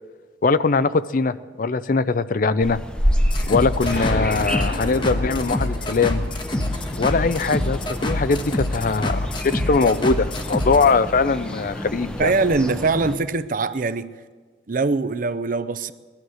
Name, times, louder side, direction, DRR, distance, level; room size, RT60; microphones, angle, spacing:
voice 1, 0.4-2.8 3.5-6.2 7.0-12.3, left 4 dB, 50° left, 0.5 m, -21 dB
sound 1, 2.6-13.2, equal, 5° left, 0.7 m, -29 dB
sound 2, 3.2-10.9, left 1 dB, 25° left, 1.1 m, -26 dB
Explosion, 3.8-8.6, left 1 dB, 75° left, 2.5 m, -31 dB
voice 2, 12.2-14.1 14.7-15.9, right 3 dB, 45° right, 0.6 m, -22 dB
17.5 x 12.0 x 6.3 m
head